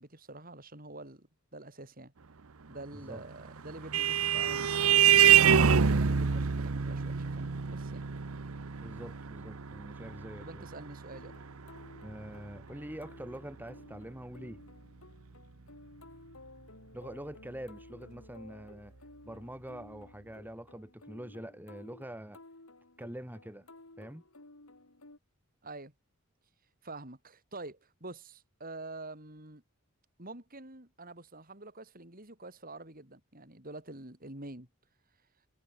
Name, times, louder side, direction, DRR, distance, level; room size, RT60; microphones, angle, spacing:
voice 1, 0.0-2.1 2.7-5.1 5.8-8.1 10.4-11.4 25.6-25.9 26.8-29.6 30.2-34.7, right 2 dB, 40° right, 5.6 m, -47 dB
Vehicle horn car horn honking, 3.3-12.3, right 8 dB, 80° right, 0.9 m, -26 dB
voice 2, 8.8-10.7 12.0-14.6 16.9-18.9 19.2-22.4 23.0-23.7 24.0-24.2, right 1 dB, 10° right, 1.8 m, -45 dB
sound 1, 11.1-25.2, left 2 dB, 85° left, 3.8 m, -55 dB
head